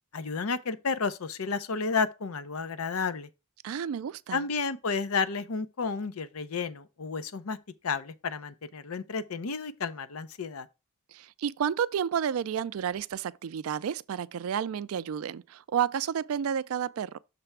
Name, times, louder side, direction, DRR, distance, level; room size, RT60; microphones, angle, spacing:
voice 1, 0.1-3.3 4.3-7.6 7.8-10.7, left 5 dB, 85° left, 0.6 m, -31 dB
voice 2, 3.6-4.4 11.1-17.2, right 8 dB, 80° right, 0.4 m, -31 dB
6.8 x 3.3 x 5.9 m
head